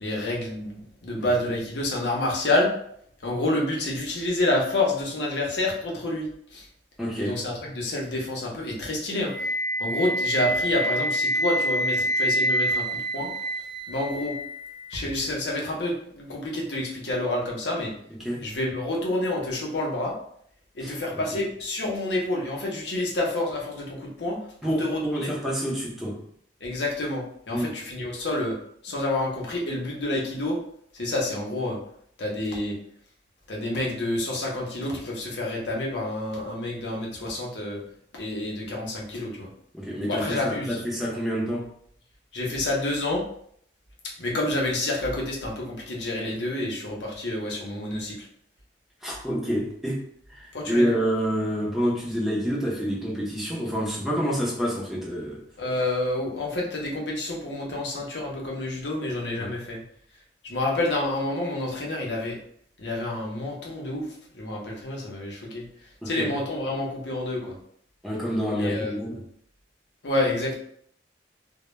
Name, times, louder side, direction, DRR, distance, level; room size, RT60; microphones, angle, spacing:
voice 1, 0.0-2.7 3.2-6.6 7.2-9.3 9.8-13.3 13.9-14.3 14.9-17.9 18.4-20.1 20.7-25.0 26.6-28.6 28.8-30.6 30.9-31.8 32.2-32.8 33.5-37.8 38.1-39.5 40.1-40.8 42.3-43.2 44.2-48.3 50.5-50.9 55.6-59.8 60.4-62.4 62.8-65.6 66.0-67.6 68.6-68.9 70.0-70.6, left 1 dB, 70° left, -2 dB, 0.7 m, -28 dB
voice 2, 7.0-7.4 18.1-18.4 20.8-20.9 24.6-26.2 27.5-27.8 39.7-41.7 49.0-55.4 59.4-59.6 66.0-66.4 68.0-69.2, equal, ahead, -4 dB, 0.5 m, -28 dB
Wind instrument woodwind instrument, 9.3-15.3, right 1 dB, 45° right, 0.7 m, -27 dB
2.1 x 2.1 x 3.0 m, 0.65 s
head